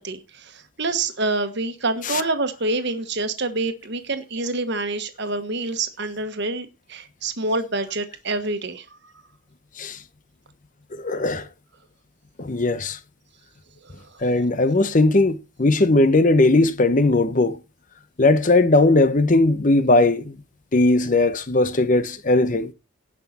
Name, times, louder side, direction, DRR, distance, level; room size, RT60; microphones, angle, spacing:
voice 1, 0.0-8.8, right 2 dB, 55° right, 1.5 m, -27 dB
voice 2, 10.9-11.5 12.4-13.0 14.2-17.6 18.2-20.4 20.7-22.7, left 2 dB, 40° left, 0.8 m, -18 dB
18.0 x 6.0 x 4.2 m
head